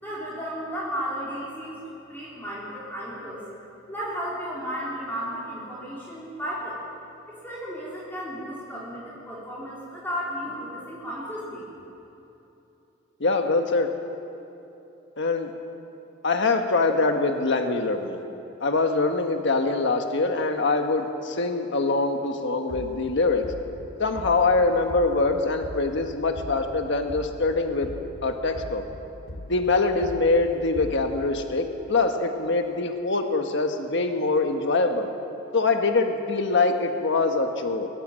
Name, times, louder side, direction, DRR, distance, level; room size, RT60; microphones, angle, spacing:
voice 1, 0.0-3.4 3.9-6.8 7.3-11.7, equal, 10° left, -8 dB, 4.2 m, -34 dB
voice 2, 13.2-13.9 15.2-15.5 16.2-18.2 18.6-23.5 24.0-27.9 28.2-28.8 29.5-35.1 35.5-37.9, left 3 dB, 60° left, 5 dB, 1.4 m, -24 dB
sound 1, 22.7-23.1 23.4-23.8 24.1-24.5 24.9-25.3 25.6-26.0 26.3-26.7 27.1-27.5 27.8-28.2 28.5-28.9 29.3-29.6 30.0-30.4 30.7-31.1, left 1 dB, 85° left, 3.2 m, -39 dB
22.0 x 19.5 x 7.6 m, 3.0 s
head